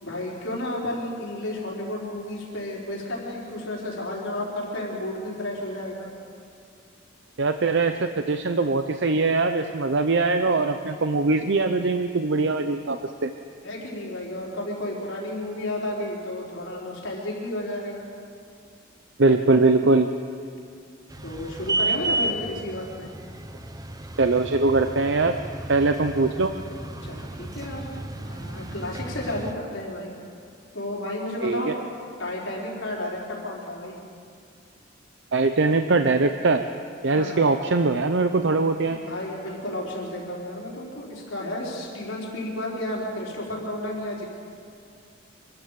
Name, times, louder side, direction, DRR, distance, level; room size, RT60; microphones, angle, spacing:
voice 1, 0.0-6.1 13.6-18.0 21.2-23.1 27.0-27.9 28.2-30.1 30.7-31.7 32.2-33.9 37.1-37.4 38.9-44.2, left 1 dB, 75° left, -4 dB, 4.7 m, -32 dB
voice 2, 7.4-13.3 19.2-20.1 24.2-25.3 25.7-26.5 31.4-31.7 35.3-36.6 37.0-39.0, right 3 dB, 65° right, 7 dB, 0.7 m, -22 dB
sound 1, 21.1-29.5, right 2 dB, 20° right, 0.9 m, -32 dB
25.5 x 13.5 x 7.6 m, 2.4 s
head